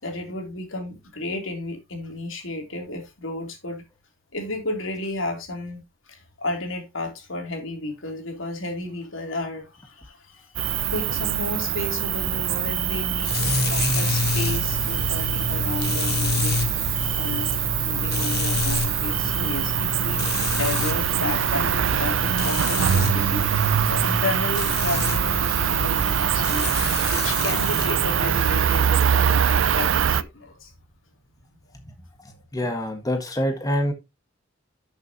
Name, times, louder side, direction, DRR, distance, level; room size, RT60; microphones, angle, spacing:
voice 1, 0.0-3.8 4.3-10.5 10.9-16.7 17.2-20.2 20.5-30.7, left 2 dB, 80° left, 3.1 m, -33 dB
Cricket, 10.6-30.2, right 9 dB, 70° right, 0.5 m, -23 dB
sound 1, 13.2-27.9, left 6 dB, 55° left, 1.4 m, -29 dB
voice 2, 32.5-33.9, equal, 20° left, 1.6 m, -25 dB
11.5 x 6.9 x 2.9 m
head